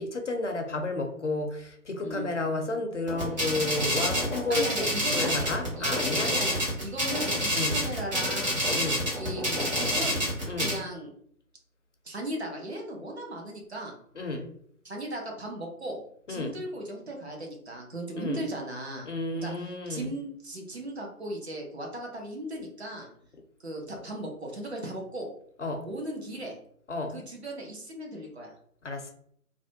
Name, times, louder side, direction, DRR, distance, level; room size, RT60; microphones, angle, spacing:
voice 1, 0.0-6.3 7.5-7.8 8.7-9.1 10.4-10.8 14.1-14.5 16.3-16.6 18.2-18.4 19.0-20.1 25.6-25.9 26.9-27.2 28.8-29.1, left 2 dB, 55° left, 4 dB, 0.5 m, -32 dB
sound 1, 3.1-10.8, equal, 30° right, 1.0 m, -28 dB
voice 2, 4.5-8.7 9.1-10.2 10.6-11.1 12.0-14.0 14.8-16.0 16.3-19.1 19.4-19.5 19.9-23.1 23.6-25.3 25.8-26.6 27.1-28.5, right 1 dB, 45° right, 0 dB, 0.7 m, -37 dB
2.4 x 2.1 x 2.7 m, 0.65 s
figure-of-eight pair, 150°, 46 cm